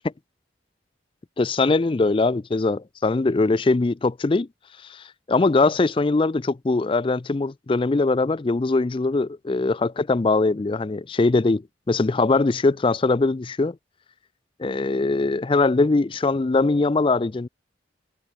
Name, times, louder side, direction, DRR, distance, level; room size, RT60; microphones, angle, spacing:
voice 1, 1.4-4.5 4.9-11.6 11.9-13.8 14.6-17.5, left 3 dB, 30° left, 0.4 m, -21 dB
head